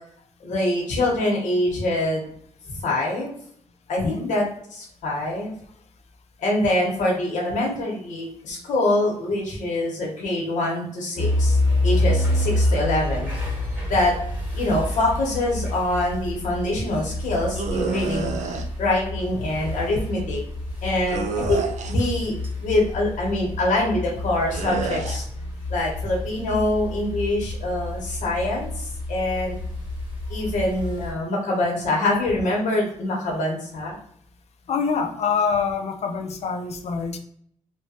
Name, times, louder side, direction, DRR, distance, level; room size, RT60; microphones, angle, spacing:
voice 1, 0.4-2.3 2.8-3.4 3.9-4.4 4.8-5.5 6.4-13.3 13.9-14.1 14.5-18.3 18.8-20.4 20.8-25.2 25.7-29.6 30.3-34.0, left 1 dB, 90° left, -3 dB, 1.1 m, -24 dB
voice 2, 4.0-4.4 34.7-37.2, left 5 dB, 60° left, 5 dB, 0.5 m, -25 dB
sound 1, 11.1-31.1, left 1 dB, 15° right, 1.4 m, -28 dB
sound 2, 17.6-18.7 21.1-22.1 24.5-25.2, right 4 dB, 70° right, 0.4 m, -29 dB
3.0 x 2.2 x 2.8 m, 0.66 s
cardioid pair, 105°, 13 cm